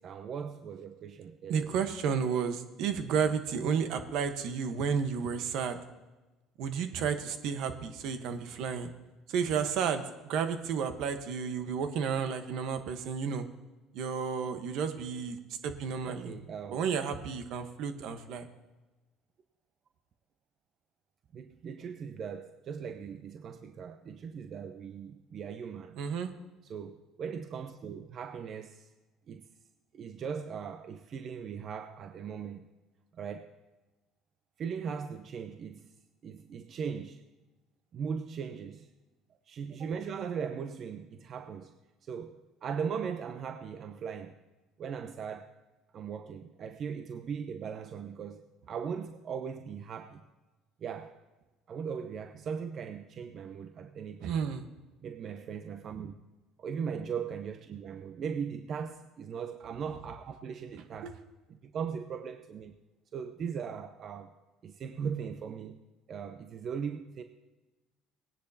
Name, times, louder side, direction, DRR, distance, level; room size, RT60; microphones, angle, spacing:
voice 1, 0.0-1.7 16.1-16.8 21.3-26.0 26.6-28.9 29.3-29.4 29.9-32.7 33.1-33.5 34.6-35.9 36.2-37.2 37.9-38.9 39.5-41.7 42.0-44.4 44.8-45.5 45.9-50.2 50.8-51.1 51.7-54.4 55.0-56.1 56.6-61.2 61.5-62.7 63.1-64.3 64.6-65.8 66.1-67.2, right 6 dB, 50° right, 0.7 m, -39 dB
voice 2, 1.5-5.8 6.6-8.9 9.3-13.4 13.9-16.3 16.7-18.5 26.0-26.3 54.2-54.7 61.0-61.1, right 6 dB, 70° right, 1.1 m, -32 dB
19.0 x 10.0 x 2.8 m
supercardioid pair, 85°, 0 cm